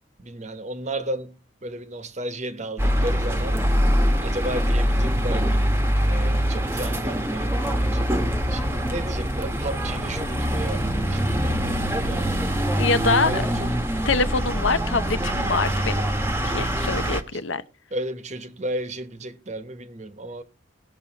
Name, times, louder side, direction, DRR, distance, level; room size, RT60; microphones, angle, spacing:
voice 1, 0.2-3.6 4.2-5.7 6.0-12.5 13.1-13.8 16.9-17.0 17.3-17.4 17.9-20.4, right 1 dB, 40° right, 1.0 m, -34 dB
sound 1, 2.8-17.2, equal, 10° right, 1.0 m, -24 dB
voice 2, 12.8-13.5 14.0-16.1 16.4-17.6, left 4 dB, 90° left, 0.8 m, -24 dB
17.5 x 6.6 x 4.0 m
head